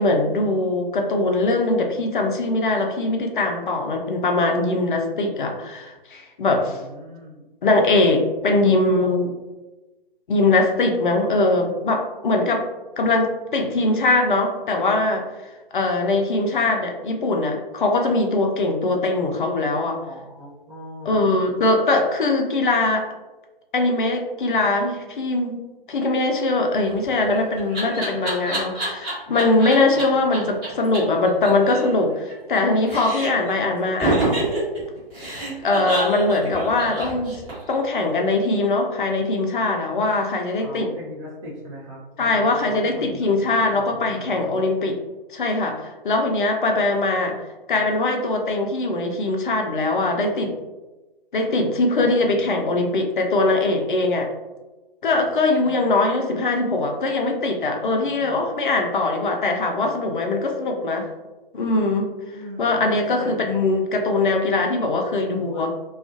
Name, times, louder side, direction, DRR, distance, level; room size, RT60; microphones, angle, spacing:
voice 1, 0.0-6.8 7.6-9.3 10.3-12.6 13.0-15.3 15.7-20.0 21.0-23.1 23.7-25.6 25.9-34.3 35.6-37.4 37.7-40.9 42.2-45.0 45.3-47.3 47.7-50.5 51.3-54.3 55.0-61.1 61.5-62.1 62.6-65.7, left 2 dB, 60° left, 3 dB, 0.5 m, -21 dB
voice 2, 6.6-7.4 20.0-21.4 29.9-30.6 40.6-44.7 52.0-52.8 55.6-55.8 58.0-58.5 62.3-63.5 65.3-65.6, equal, 30° right, -9 dB, 0.6 m, -40 dB
Laughter, 26.9-30.0 30.3-30.4 30.6-30.7 30.9-31.0 31.3-32.6 32.9-33.5 34.0-37.7, right 2 dB, 15° right, 1.0 m, -27 dB
2.4 x 2.3 x 2.4 m, 1.1 s
figure-of-eight pair, 130°, 29 cm